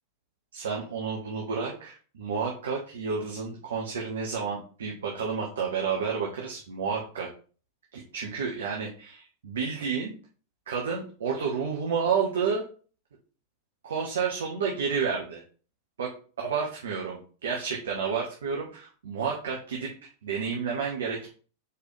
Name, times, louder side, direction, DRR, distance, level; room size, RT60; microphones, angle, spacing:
voice 1, 0.5-7.3 7.9-10.1 10.7-12.6 13.8-15.4 16.0-19.9 20.2-21.3, right 6 dB, 65° right, -1 dB, 1.5 m, -30 dB
7.0 x 4.7 x 3.4 m, 0.39 s
figure-of-eight pair, 90°, 0 cm